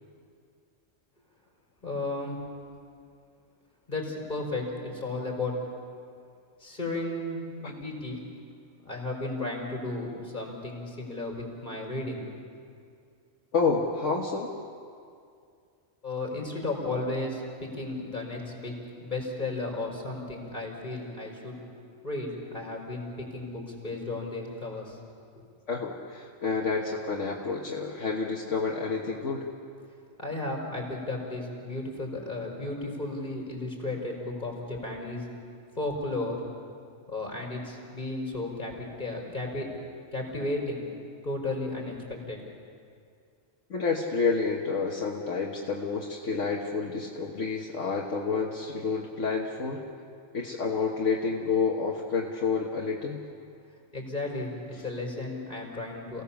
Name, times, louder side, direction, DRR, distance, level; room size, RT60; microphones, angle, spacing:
voice 1, 1.8-2.4 3.9-5.6 6.6-8.2 8.8-12.2 16.0-18.7 19.0-21.6 22.0-25.0 25.3-25.4 30.2-35.3 35.8-36.4 37.1-39.7 40.1-40.8 41.2-41.9 42.3-42.4 53.9-56.2, left 2 dB, 35° left, -1 dB, 4.9 m, -34 dB
voice 2, 13.5-14.5 25.7-29.5 43.7-49.8 50.3-53.2, left 4 dB, 70° left, -2 dB, 1.8 m, -29 dB
28.5 x 18.0 x 7.2 m, 2.3 s
omnidirectional pair, 1.3 m